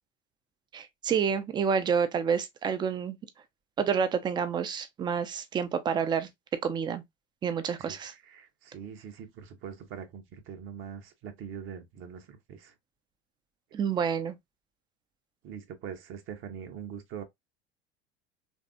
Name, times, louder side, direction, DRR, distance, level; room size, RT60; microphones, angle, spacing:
voice 1, 0.7-3.2 3.8-6.3 6.6-7.0 7.4-8.1 13.7-14.4, right 7 dB, 15° right, 0.3 m, -28 dB
voice 2, 7.8-12.7 15.4-17.2, right 7 dB, 40° right, 0.7 m, -43 dB
3.2 x 2.6 x 2.3 m
figure-of-eight pair, 75°, 33 cm